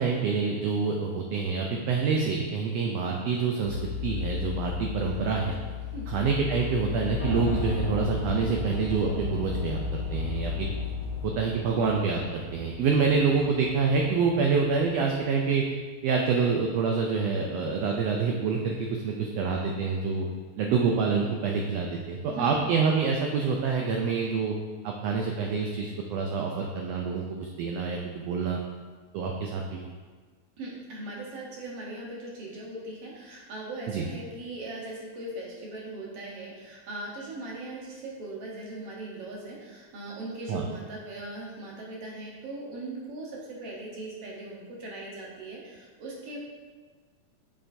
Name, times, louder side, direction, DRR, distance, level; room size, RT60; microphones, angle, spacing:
voice 1, 0.0-3.7 4.0-5.6 6.1-10.7 11.2-15.6 16.0-20.3 20.6-24.5 24.8-28.6 29.1-29.8 33.9-34.1 40.5-40.7, right 5 dB, 85° right, 1 dB, 1.4 m, -27 dB
sound 1, 3.6-11.3, left 10 dB, 85° left, 2.0 m, -35 dB
Piano, 7.2-15.2, right 1 dB, 45° left, 1.5 m, -35 dB
voice 2, 30.6-46.4, right 2 dB, 60° right, -4 dB, 1.9 m, -39 dB
6.8 x 5.5 x 2.7 m, 1.5 s
omnidirectional pair, 3.5 m